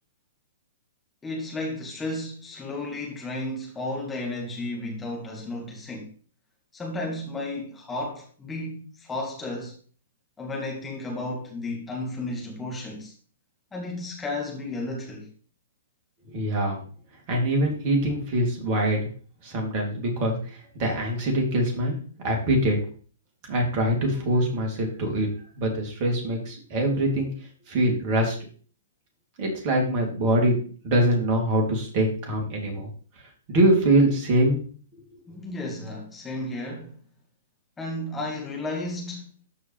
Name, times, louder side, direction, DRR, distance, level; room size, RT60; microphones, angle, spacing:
voice 1, 1.2-6.1 6.7-9.7 10.4-13.1 13.7-15.3 35.3-37.0 37.8-39.3, left 2 dB, 10° left, 2.1 m, -33 dB
voice 2, 16.3-16.8 17.3-19.1 19.4-20.4 20.8-22.0 22.2-22.8 23.5-25.3 25.6-27.3 27.7-28.3 29.4-30.6 30.8-32.9 33.5-34.6, right 1 dB, 40° right, 3.2 m, -23 dB
13.0 x 4.9 x 3.5 m
figure-of-eight pair, 115°, 0 cm